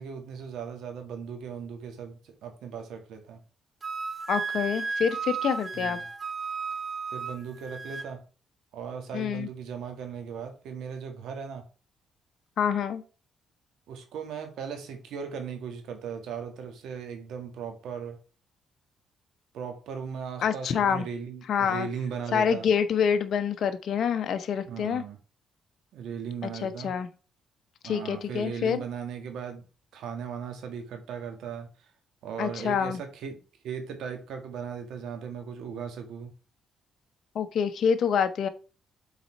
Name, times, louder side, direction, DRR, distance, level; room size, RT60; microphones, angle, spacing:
voice 1, 0.0-3.4 5.7-6.1 7.1-8.2 8.7-11.6 13.9-18.2 19.5-22.7 24.6-25.2 25.9-26.9 27.8-29.6 29.9-31.9 32.2-33.4 33.6-36.3, right 7 dB, 80° right, 1.8 m, -37 dB
Wind instrument woodwind instrument, 3.8-8.1, right 5 dB, 35° right, 0.7 m, -34 dB
voice 2, 4.3-6.0 9.1-9.5 12.6-13.0 20.4-21.0 21.5-21.9 22.3-25.0 26.6-27.1 27.8-28.8 32.4-33.0 37.3-38.5, left 7 dB, 65° left, 0.9 m, -26 dB
7.0 x 4.2 x 4.6 m
cardioid pair, 90°, 0 cm